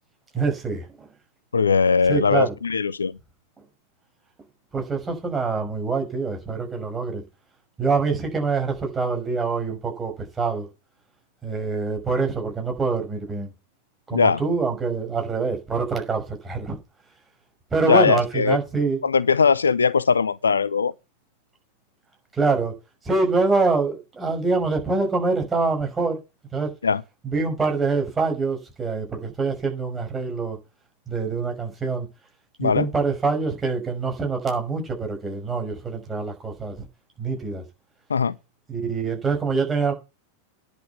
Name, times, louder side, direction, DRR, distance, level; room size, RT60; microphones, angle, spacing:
voice 1, 0.3-1.1 2.1-2.5 4.7-7.2 7.8-10.7 11.4-13.5 14.1-16.8 17.7-19.0 22.3-22.7 23.0-26.2 26.5-26.7 27.2-30.6 31.1-32.1 32.6-36.9 37.2-37.6 38.7-39.9, right 4 dB, 15° right, 5.6 m, -25 dB
voice 2, 1.5-3.2 14.1-14.4 17.8-18.6 19.0-20.9 26.8-27.0 32.6-32.9 38.1-38.4, left 5 dB, 75° left, 0.6 m, -20 dB
10.0 x 6.8 x 8.2 m
figure-of-eight pair, 90°, 0 cm